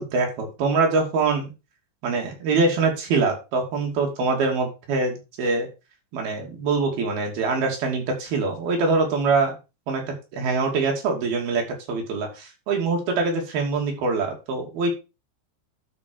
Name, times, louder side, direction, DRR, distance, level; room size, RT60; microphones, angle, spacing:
voice 1, 0.0-1.5 2.0-5.7 6.1-9.6 9.9-10.0 10.3-11.6 11.9-14.9, right 4 dB, 70° right, 1 dB, 4.5 m, -24 dB
12.0 x 5.3 x 4.6 m, 0.29 s
omnidirectional pair, 4.5 m